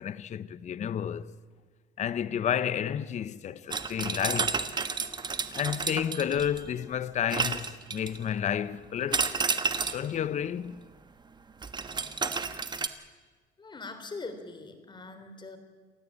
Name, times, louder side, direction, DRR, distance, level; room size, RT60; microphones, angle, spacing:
voice 1, 0.0-1.4 2.0-4.6 5.5-9.4 9.9-10.8, left 9 dB, 45° left, 0.8 m, -31 dB
sound 1, 3.7-6.7 7.3-8.3 9.1-10.1 11.6-12.9, right 5 dB, 25° right, 1.3 m, -31 dB
voice 2, 13.6-15.6, left 3 dB, 25° left, 3.4 m, -42 dB
28.0 x 15.0 x 8.5 m
cardioid pair, 110°, 17 cm